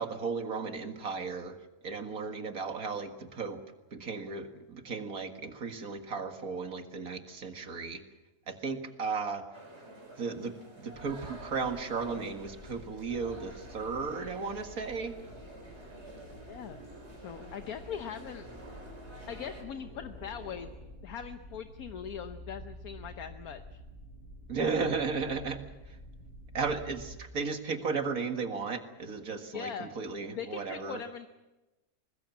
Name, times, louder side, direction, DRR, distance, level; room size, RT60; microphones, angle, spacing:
voice 1, 0.0-1.6 1.8-3.6 3.9-8.0 8.5-9.4 10.2-15.1 24.5-25.6 26.5-31.0, right 4 dB, 65° right, 6 dB, 2.3 m, -35 dB
sound 1, 9.5-19.6, right 1 dB, 45° right, 4.2 m, -50 dB
sound 2, 10.9-27.1, equal, 50° left, 6.9 m, -50 dB
sound 3, 13.1-20.8, right 1 dB, 25° left, 5.1 m, -55 dB
voice 2, 16.5-16.8 17.2-18.5 19.3-23.8 29.5-29.9 30.3-31.3, left 8 dB, 70° left, 8 dB, 1.4 m, -41 dB
24.0 x 20.0 x 7.3 m, 1.1 s
omnidirectional pair, 1.6 m